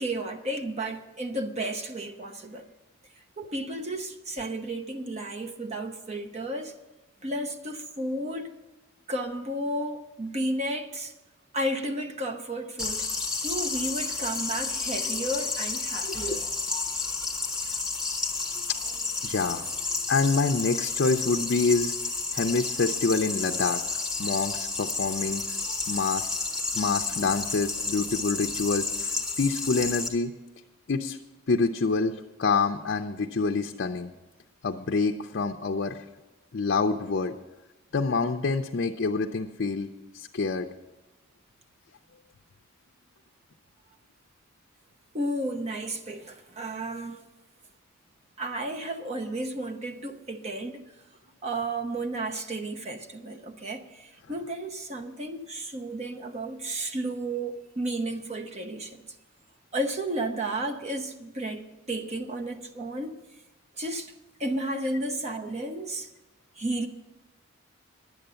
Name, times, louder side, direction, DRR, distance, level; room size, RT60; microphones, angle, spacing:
voice 1, 0.0-2.7 3.4-6.8 7.2-8.5 9.1-11.1 11.5-13.1 13.4-16.4 17.6-17.8 45.1-47.3 48.4-50.8 51.4-59.0 59.7-63.2 63.8-64.1 64.4-66.1 66.6-66.9, right 1 dB, 35° right, 0.9 m, -33 dB
sound 1, 12.8-30.1, left 3 dB, 5° right, 1.2 m, -31 dB
voice 2, 16.0-16.4 19.2-19.7 20.1-21.9 22.3-23.8 24.2-25.4 25.9-26.4 26.7-30.3 30.9-31.2 31.5-34.1 34.6-36.0 36.5-37.4 37.9-39.9 40.1-40.7, left 4 dB, 55° left, 0.5 m, -27 dB
10.5 x 8.9 x 6.9 m
head